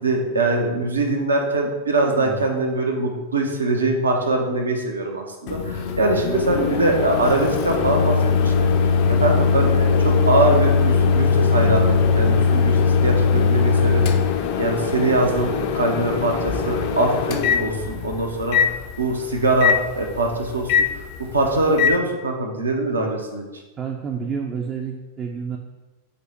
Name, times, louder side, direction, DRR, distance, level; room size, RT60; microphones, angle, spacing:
voice 1, 0.0-8.7 9.1-14.1 14.6-20.7 21.3-23.5, right 2 dB, 75° right, 2 dB, 0.6 m, -22 dB
voice 2, 2.2-2.5 23.8-25.6, right 6 dB, 25° right, 2 dB, 0.3 m, -29 dB
Microwave oven, 5.5-22.0, left 5 dB, 45° left, 0.4 m, -20 dB
5.0 x 2.1 x 4.4 m, 1.2 s
figure-of-eight pair, 90°, 0 cm